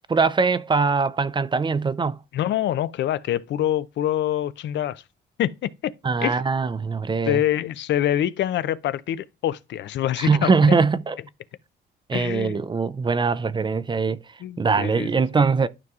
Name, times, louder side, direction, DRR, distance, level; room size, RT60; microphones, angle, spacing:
voice 1, 0.1-2.2 6.0-7.4 10.2-11.2 12.1-14.2 14.6-15.7, right 4 dB, 25° right, 0.4 m, -22 dB
voice 2, 2.3-5.0 5.4-5.9 6.2-6.4 7.3-10.5 12.1-12.7 14.4-15.2, left 11 dB, 65° left, 0.4 m, -25 dB
12.0 x 4.7 x 2.4 m
cardioid pair, 90°, 20 cm